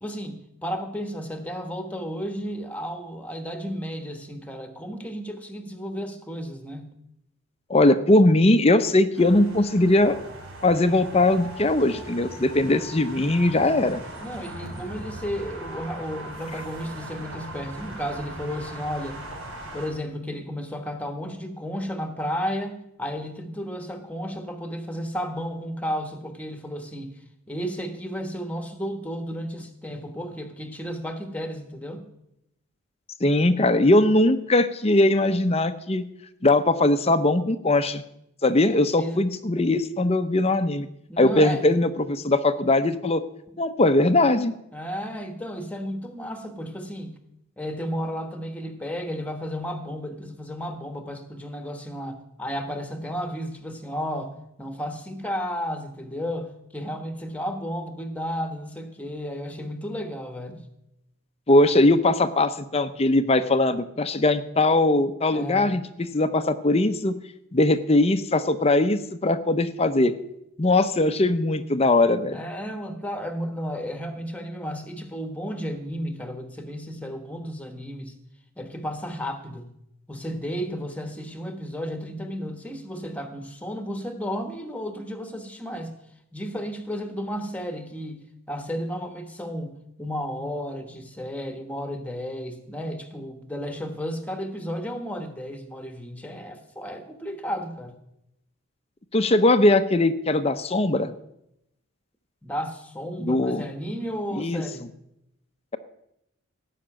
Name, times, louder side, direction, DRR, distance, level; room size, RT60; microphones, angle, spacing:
voice 1, 0.0-6.9 14.2-19.2 19.7-27.2 27.5-32.0 38.7-39.2 41.1-41.6 44.7-47.2 47.6-60.6 65.3-65.8 72.3-78.1 78.6-79.7 80.1-86.0 86.3-98.0 102.4-104.9, equal, 5° left, 6 dB, 1.2 m, -33 dB
voice 2, 7.7-10.2 10.6-14.0 33.2-36.0 36.4-38.0 38.4-40.9 41.2-43.2 43.6-44.5 61.5-65.8 66.1-67.1 67.5-70.1 70.6-72.4 99.1-101.1 103.2-103.6 104.3-104.6, left 2 dB, 30° left, 11 dB, 0.6 m, -20 dB
sound 1, 9.1-19.9, right 1 dB, 70° right, 4.9 m, -39 dB
17.0 x 5.9 x 8.8 m, 0.82 s
head